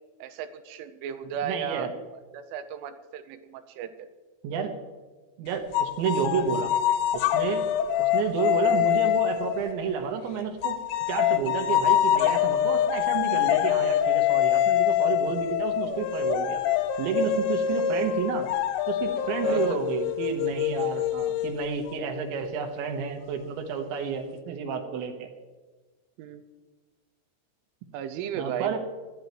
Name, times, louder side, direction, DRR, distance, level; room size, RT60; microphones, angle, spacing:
voice 1, 0.2-1.9 2.3-4.1 17.7-17.9 19.4-19.8 26.2-26.4 27.9-28.8, right 8 dB, 90° right, 10 dB, 3.4 m, -35 dB
voice 2, 1.4-1.9 4.4-4.7 5.4-6.7 7.1-7.7 8.0-10.8 11.1-16.6 17.0-18.5 18.9-25.3 28.3-28.8, right 7 dB, 75° right, 5 dB, 3.3 m, -30 dB
sound 1, 5.7-10.1 10.6-22.0, left 10 dB, 85° left, 2.7 m, -25 dB
20.0 x 13.5 x 3.1 m, 1.3 s
omnidirectional pair, 5.7 m